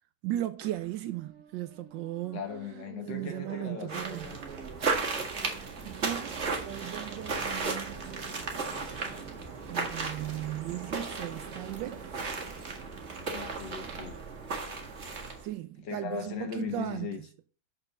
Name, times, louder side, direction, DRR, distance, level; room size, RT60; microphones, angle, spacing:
voice 1, 0.2-2.4 3.1-4.2 5.8-8.1 9.7-12.1 15.4-17.2, right 14 dB, 75° right, 1.2 m, -36 dB
sound 1, 0.6-15.2, right 7 dB, 55° right, 1.3 m, -49 dB
voice 2, 2.3-4.4 13.3-14.2 15.8-17.2, left 7 dB, 60° left, 1.9 m, -38 dB
sound 2, 3.9-15.5, right 4 dB, 35° right, 1.8 m, -35 dB
6.1 x 5.8 x 6.5 m
omnidirectional pair, 2.2 m